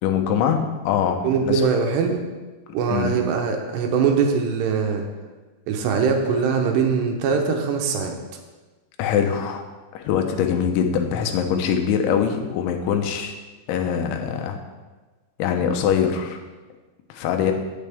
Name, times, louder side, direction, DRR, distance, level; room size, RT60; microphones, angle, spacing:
voice 1, 0.0-1.6 2.9-3.2 9.0-9.6 9.9-13.3 13.7-14.6 15.4-16.4 17.1-17.5, left 8 dB, 90° left, 5 dB, 3.4 m, -23 dB
voice 2, 1.2-2.3 2.7-5.0 5.7-8.2, right 6 dB, 75° right, 3 dB, 2.9 m, -22 dB
16.5 x 7.5 x 3.5 m, 1.3 s
omnidirectional pair, 5.2 m